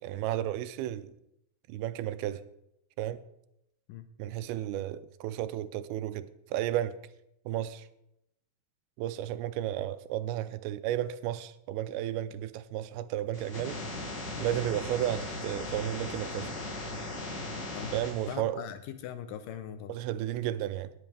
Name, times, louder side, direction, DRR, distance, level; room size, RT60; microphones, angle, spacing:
voice 1, 0.0-1.1 1.7-2.4 3.0-3.2 4.2-7.0 7.5-7.9 9.0-13.8 14.4-16.5 17.9-18.6 19.9-20.9, right 12 dB, 80° right, 2.5 m, -33 dB
sound 1, 13.3-18.3, left 2 dB, 40° left, 1.9 m, -38 dB
voice 2, 18.3-19.9, left 10 dB, 75° left, 2.1 m, -41 dB
19.5 x 8.6 x 3.3 m
omnidirectional pair, 4.4 m